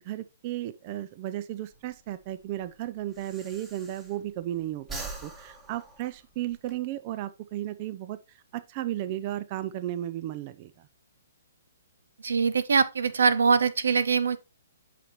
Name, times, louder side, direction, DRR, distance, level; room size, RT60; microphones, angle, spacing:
voice 1, 0.0-10.7, right 13 dB, 35° right, 0.5 m, -34 dB
Breathing, 1.7-4.5 4.8-6.8, right 3 dB, 15° right, 1.6 m, -43 dB
voice 2, 12.2-14.4, right 5 dB, 80° right, 0.8 m, -23 dB
8.3 x 5.9 x 3.0 m
hypercardioid pair, 140°, 0 cm